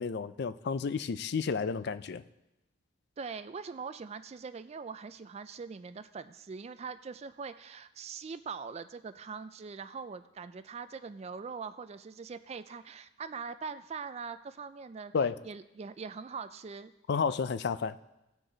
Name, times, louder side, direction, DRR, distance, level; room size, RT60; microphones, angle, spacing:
voice 1, 0.0-2.2 15.1-15.4 17.1-18.0, left 5 dB, 55° left, 0.4 m, -31 dB
voice 2, 3.2-15.1 15.4-16.9, right 5 dB, 30° right, 0.3 m, -42 dB
18.5 x 6.2 x 3.9 m
head